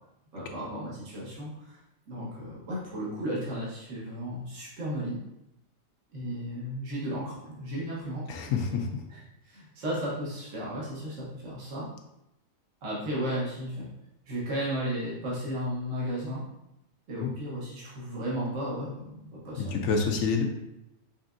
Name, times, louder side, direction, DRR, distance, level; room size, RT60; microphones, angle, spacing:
voice 1, 0.3-1.8 2.1-5.2 6.1-8.2 9.1-9.2 9.4-11.9 12.8-13.9 14.3-16.5 17.1-19.8, equal, 65° right, -6 dB, 1.5 m, -34 dB
voice 2, 8.3-9.0 17.2-17.3 19.7-20.4, left 5 dB, 75° left, 3 dB, 1.0 m, -27 dB
6.0 x 3.5 x 2.5 m, 0.87 s
omnidirectional pair, 1.4 m